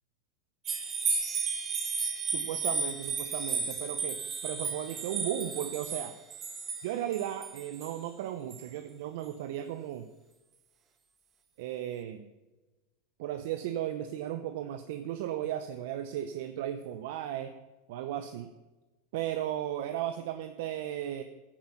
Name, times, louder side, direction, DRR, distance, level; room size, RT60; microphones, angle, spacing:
sound 1, 0.6-8.0 8.5-8.6, right 5 dB, 30° right, 1.6 m, -33 dB
voice 1, 2.3-6.2 6.8-10.1 11.6-12.3 13.2-17.5 17.9-18.5 19.1-21.2, right 11 dB, 70° right, 9 dB, 0.7 m, -35 dB
10.0 x 9.8 x 6.0 m, 1.1 s
hypercardioid pair, 110°, 0 cm